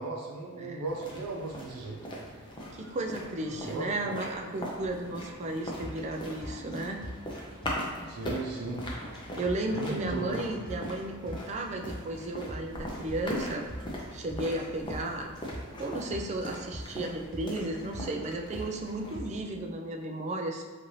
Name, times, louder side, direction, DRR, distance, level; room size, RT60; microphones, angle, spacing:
voice 1, 0.0-2.0 3.5-4.1 8.1-8.9 9.7-10.4, right 3 dB, 90° right, -1 dB, 0.6 m, -36 dB
sound 1, 0.9-19.4, equal, 20° left, 0.5 m, -41 dB
voice 2, 2.7-7.0 9.4-13.7 14.1-15.3 15.8-20.6, right 2 dB, 30° right, 2 dB, 0.3 m, -34 dB
sound 2, 5.8-19.2, equal, 5° left, 1.2 m, -43 dB
4.0 x 2.5 x 3.1 m, 1.4 s
head